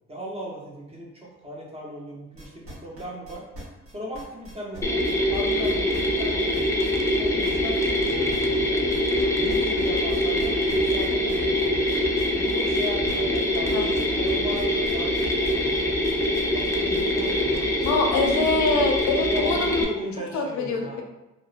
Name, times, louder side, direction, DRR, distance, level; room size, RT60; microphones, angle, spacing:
voice 1, 0.1-3.4 3.9-5.0 5.3-6.9 7.2-8.9 9.3-11.9 12.4-13.9 14.2-16.1 16.5-17.7 18.0-18.1 19.2-21.0, equal, 20° right, -4 dB, 0.7 m, -37 dB
sound 1, 2.4-9.2 9.5-19.1, equal, 50° right, 1.1 m, -42 dB
Mechanisms, 4.8-19.8, left 1 dB, 10° left, 0.3 m, -24 dB
sound 2, 13.3-18.3, right 4 dB, 70° right, 0.5 m, -40 dB
voice 2, 17.8-19.9 20.3-21.0, left 3 dB, 70° left, 2 dB, 0.5 m, -24 dB
2.7 x 2.0 x 2.3 m, 0.98 s
cardioid pair, 90°, 30 cm